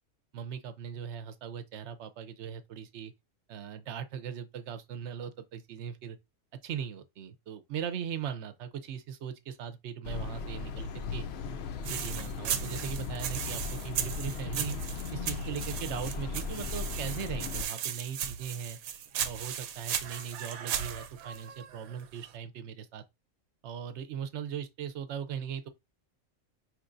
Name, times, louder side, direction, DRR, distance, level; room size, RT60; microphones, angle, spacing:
voice 1, 0.3-3.1 3.5-6.2 6.6-11.2 11.9-14.7 15.1-18.8 19.2-23.0 23.6-25.7, right 8 dB, 60° right, 0.9 m, -39 dB
sound 1, 10.0-17.7, left 4 dB, 65° left, 0.7 m, -37 dB
sound 2, 11.8-22.3, right 9 dB, 85° right, 1.1 m, -37 dB
5.7 x 3.2 x 2.5 m
omnidirectional pair, 1.5 m